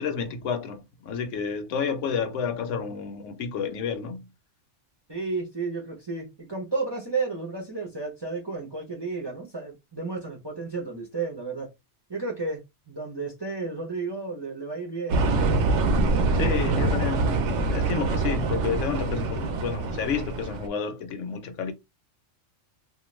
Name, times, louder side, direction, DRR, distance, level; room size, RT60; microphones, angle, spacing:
voice 1, 0.0-4.3 16.3-21.7, left 6 dB, 70° left, 0.9 m, -30 dB
voice 2, 5.1-11.7 12.1-15.2, right 4 dB, 25° right, 0.6 m, -32 dB
sound 1, 15.1-20.7, right 3 dB, 70° right, 0.8 m, -25 dB
2.4 x 2.3 x 3.0 m
omnidirectional pair, 1.4 m